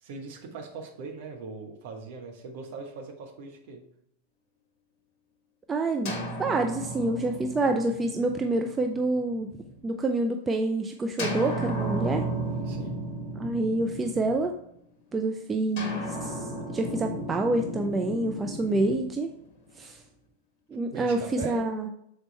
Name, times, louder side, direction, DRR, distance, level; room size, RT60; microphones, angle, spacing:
voice 1, 0.0-3.8 12.6-13.0 20.9-21.6, right 4 dB, 50° right, 2 dB, 1.3 m, -40 dB
voice 2, 5.7-9.5 9.8-12.3 13.4-14.5 15.1-19.3 19.8-20.0 20.7-21.9, right 2 dB, 15° right, 4 dB, 0.5 m, -27 dB
sound 1, 6.0-9.8 11.2-14.7 15.8-19.9, right 1 dB, 40° left, 1.5 m, -35 dB
6.7 x 4.4 x 4.2 m, 0.74 s
figure-of-eight pair, 90°, 0 cm